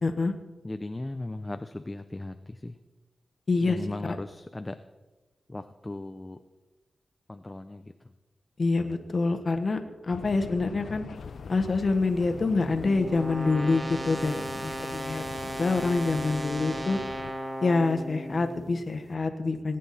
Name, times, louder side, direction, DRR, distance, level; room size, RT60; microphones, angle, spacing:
voice 1, 0.0-0.3 3.5-4.1 8.6-11.0 11.5-15.2 15.6-17.0 17.6-19.8, left 3 dB, 50° left, 6 dB, 1.3 m, -26 dB
voice 2, 0.6-2.8 3.6-4.8 5.5-6.4 7.3-7.9 14.4-14.7, left 2 dB, 25° left, 9 dB, 0.6 m, -37 dB
sound 1, 10.1-17.3, left 6 dB, 85° left, 0.6 m, -43 dB
sound 2, 11.7-18.9, equal, 35° right, 1.7 m, -36 dB
19.0 x 9.3 x 4.2 m, 1.2 s
cardioid pair, 60°, 0 cm